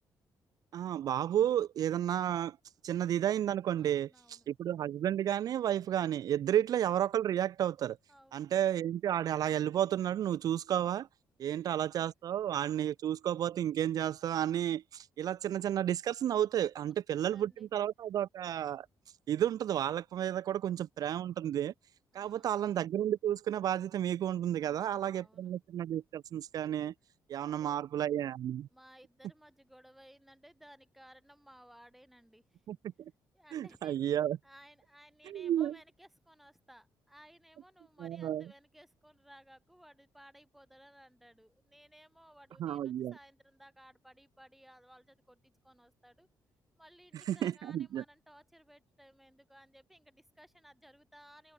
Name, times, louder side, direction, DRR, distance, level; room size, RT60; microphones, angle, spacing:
voice 1, 0.7-2.6 2.8-8.0 8.3-11.1 11.4-18.9 19.3-21.7 22.1-26.9 27.3-28.7 32.7-33.1 33.5-34.4 35.3-35.8 38.0-38.4 42.6-43.1 47.3-48.0, right 11 dB, 55° right, 0.4 m, -32 dB
voice 2, 3.8-4.5 8.1-8.5 11.4-11.7 16.8-17.7 22.1-22.6 24.6-25.5 27.3-27.9 28.7-32.6 33.3-34.0 34.4-46.3 46.8-51.5, equal, ahead, 2.3 m, -59 dB
cardioid pair, 140°, 7 cm